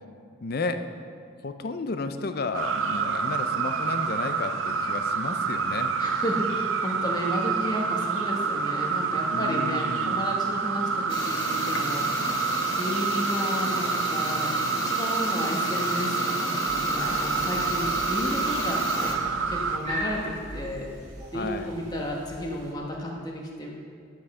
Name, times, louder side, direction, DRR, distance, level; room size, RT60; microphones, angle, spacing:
voice 1, 0.4-0.8 1.4-5.9 9.3-10.2 21.3-21.7, left 3 dB, 50° left, 9 dB, 0.5 m, -32 dB
sound 1, 2.5-19.8, right 5 dB, 75° right, 0.6 m, -28 dB
voice 2, 6.0-12.4 12.8-19.1 19.5-20.9 21.3-23.7, equal, 20° left, -1 dB, 1.2 m, -32 dB
sound 2, 11.1-19.2, left 3 dB, 65° left, 1.1 m, -34 dB
sound 3, 16.7-22.7, equal, 35° right, 1.9 m, -39 dB
10.0 x 6.4 x 5.5 m, 2.3 s
head